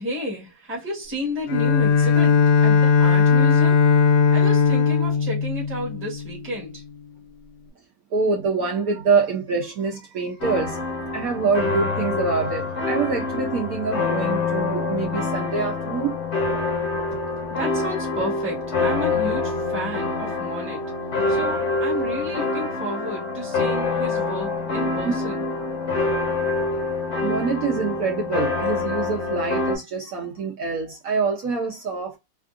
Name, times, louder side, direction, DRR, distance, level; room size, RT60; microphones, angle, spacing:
voice 1, 0.0-2.4 2.6-3.8 4.3-6.8 17.5-20.8 21.3-25.4, equal, 10° right, 0.9 m, -31 dB
Bowed string instrument, 1.5-6.5, left 5 dB, 80° left, 1.2 m, -18 dB
voice 2, 8.1-10.8 11.1-16.1 25.0-25.1 27.2-32.2, right 4 dB, 65° right, 1.0 m, -25 dB
sound 1, 10.4-29.8, left 3 dB, 45° left, 1.1 m, -26 dB
3.5 x 2.4 x 2.4 m
omnidirectional pair, 1.9 m